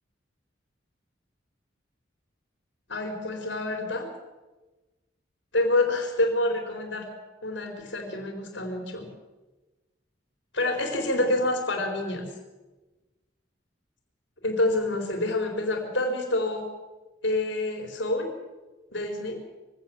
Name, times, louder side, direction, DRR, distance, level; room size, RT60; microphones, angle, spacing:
voice 1, 2.9-4.1 5.5-7.1 7.4-9.1 10.5-12.3 14.4-16.7 17.2-18.3 18.9-19.4, left 2 dB, 75° left, 3 dB, 4.2 m, -27 dB
23.0 x 16.5 x 7.7 m, 1.1 s
head